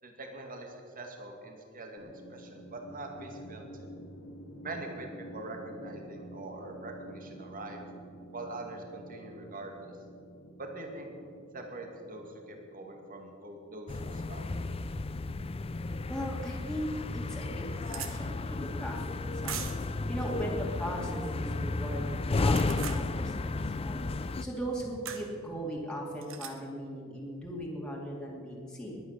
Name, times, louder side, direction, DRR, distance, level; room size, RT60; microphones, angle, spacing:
voice 1, 0.0-3.9 4.6-7.8 8.3-9.9 10.6-11.1 11.5-14.4, right 2 dB, 40° right, 3 dB, 2.4 m, -43 dB
sound 1, 2.0-14.1, right 1 dB, 80° left, 2.6 m, -49 dB
sound 2, 13.9-24.4, left 2 dB, 30° left, 0.5 m, -33 dB
voice 2, 16.1-29.0, equal, 5° left, -4 dB, 2.5 m, -39 dB
sound 3, 16.5-16.6 17.1-17.2 17.4-18.1 19.4-19.9 22.3-23.0 25.1-25.3 26.2-26.5, right 8 dB, 65° right, 1.4 m, -40 dB
21.5 x 9.3 x 6.7 m, 2.5 s
head